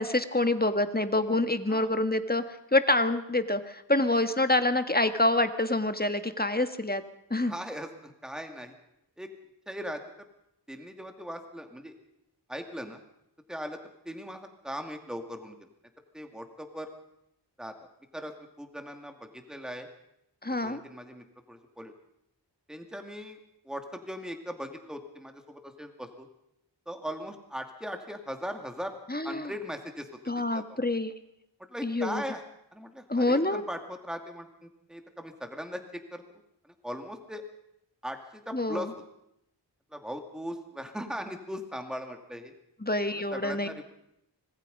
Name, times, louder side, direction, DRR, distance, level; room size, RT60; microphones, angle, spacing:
voice 1, 0.0-7.0 7.3-7.5 20.4-20.8 29.1-29.5 30.3-31.1 31.8-32.2 33.1-33.6 38.5-38.9 42.8-43.7, left 2 dB, 20° left, 9 dB, 1.6 m, -27 dB
voice 2, 7.5-8.7 9.2-9.3 9.7-10.0 10.7-11.9 12.5-13.0 13.5-13.8 14.0-15.6 16.1-16.9 17.6-17.7 18.1-19.9 20.6-21.9 22.7-23.4 23.6-26.3 26.9-29.0 29.2-30.1 30.4-30.8 31.7-32.4 32.7-36.2 36.8-37.4 38.0-38.9 39.9-42.5 43.1-43.9, equal, ahead, 5 dB, 2.6 m, -39 dB
25.5 x 20.0 x 5.4 m, 0.80 s
wide cardioid pair, 50°, 44 cm